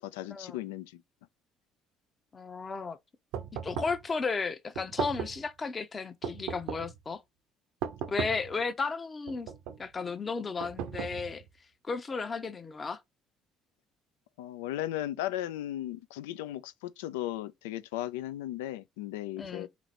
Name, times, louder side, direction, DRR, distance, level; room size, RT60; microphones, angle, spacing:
voice 1, 0.0-1.0 14.4-19.7, left 13 dB, 90° left, 0.4 m, -36 dB
voice 2, 2.3-3.0 3.6-7.2 8.1-9.5 9.8-11.4 11.8-13.0 19.4-19.7, left 4 dB, 35° left, 0.8 m, -34 dB
sound 1, 3.3-4.1 4.7-5.5 6.2-7.0 7.8-8.5 9.3-9.9 10.6-11.5, right 8 dB, 80° right, 0.6 m, -37 dB
4.0 x 3.0 x 4.1 m
hypercardioid pair, 65°, 0 cm